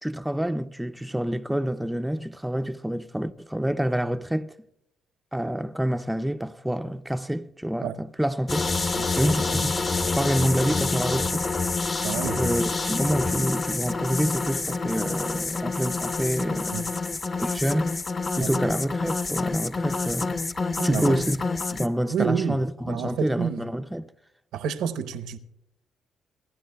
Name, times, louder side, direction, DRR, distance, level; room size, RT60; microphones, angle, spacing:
voice 1, 0.0-4.5 5.3-8.7 9.2-9.7 10.2-11.5 12.1-16.8 17.4-18.0 18.4-20.4 20.8-21.4 21.7-24.1, equal, 5° right, 0.4 m, -27 dB
sound 1, 8.5-21.9, left 3 dB, 35° left, 0.7 m, -27 dB
voice 2, 12.0-12.4 16.7-16.8 18.4-18.5 20.8-21.2 22.1-22.6 22.9-23.7 24.5-25.4, right 7 dB, 85° right, 0.8 m, -29 dB
28.5 x 10.5 x 2.2 m
cardioid pair, 90°, 0 cm